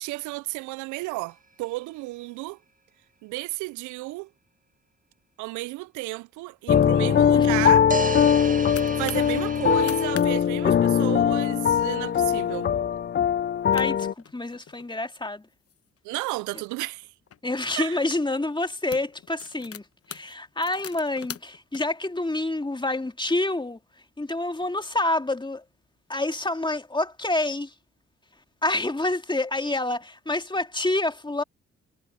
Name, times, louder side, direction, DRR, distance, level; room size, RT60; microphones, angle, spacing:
voice 1, 0.0-2.6 3.2-4.3 5.4-7.9 9.0-12.7 16.0-17.1 17.8-18.0, right 21 dB, 80° right, 0.5 m, -32 dB
sound 1, 1.0-1.1 7.9-10.2, right 3 dB, 25° right, 1.6 m, -33 dB
sound 2, 6.7-14.1, left 8 dB, 35° left, 0.5 m, -21 dB
sound 3, 8.2-9.3 9.7-10.3 10.6-10.7 11.0-11.4 11.9-12.1 12.6-12.7 13.4-13.5 13.7-14.9 15.5-17.4 18.1-18.3 18.7-21.8, left 9 dB, 50° left, 1.1 m, -43 dB
voice 2, 13.7-15.5 17.4-23.8 24.2-25.6 26.1-27.7 28.6-31.4, left 2 dB, 15° left, 2.2 m, -28 dB
hypercardioid pair, 50°, 29 cm